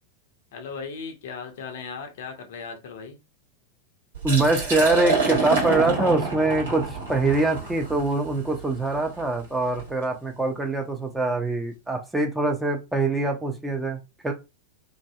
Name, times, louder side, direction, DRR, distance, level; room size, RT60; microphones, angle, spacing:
voice 1, 0.5-3.2, left 5 dB, 55° left, 0.5 m, -37 dB
Liquid, 4.1-9.9, right 4 dB, 70° right, 1.3 m, -28 dB
voice 2, 4.2-6.8 7.1-14.3, right 2 dB, 5° right, 0.6 m, -24 dB
2.6 x 2.6 x 2.3 m
figure-of-eight pair, 90°, 0 cm